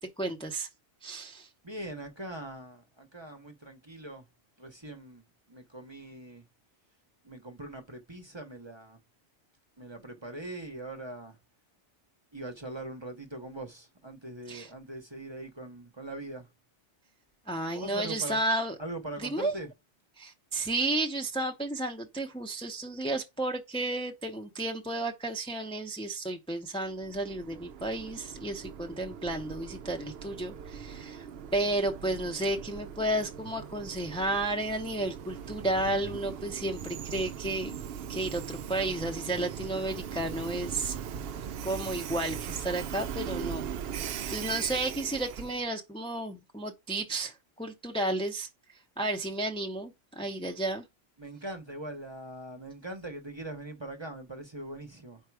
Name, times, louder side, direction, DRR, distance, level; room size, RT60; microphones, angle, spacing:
voice 1, 0.2-0.7 1.0-1.5 14.5-14.7 17.5-18.7 19.2-19.5 20.2-31.3 31.5-37.7 38.1-40.9 41.6-48.5 49.0-50.8, right 2 dB, 5° left, 0.7 m, -32 dB
voice 2, 1.6-4.2 4.6-6.4 7.2-9.0 9.8-11.4 12.3-16.5 17.7-18.4 18.8-19.7 51.2-55.2, right 1 dB, 25° right, 1.0 m, -41 dB
Train, 26.9-45.7, right 8 dB, 65° right, 0.7 m, -40 dB
4.6 x 4.6 x 4.7 m
omnidirectional pair, 1.2 m